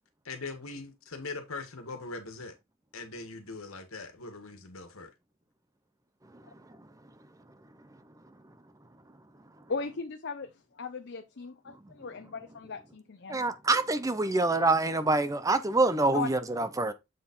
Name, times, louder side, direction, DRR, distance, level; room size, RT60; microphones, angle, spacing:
voice 1, 0.3-2.5 2.9-5.1, left 3 dB, 75° left, 1.7 m, -41 dB
voice 2, 9.7-11.6 12.0-13.5 16.1-16.3, left 4 dB, 55° left, 0.7 m, -37 dB
voice 3, 13.3-16.9, right 2 dB, 15° right, 0.6 m, -26 dB
7.5 x 4.2 x 4.3 m
head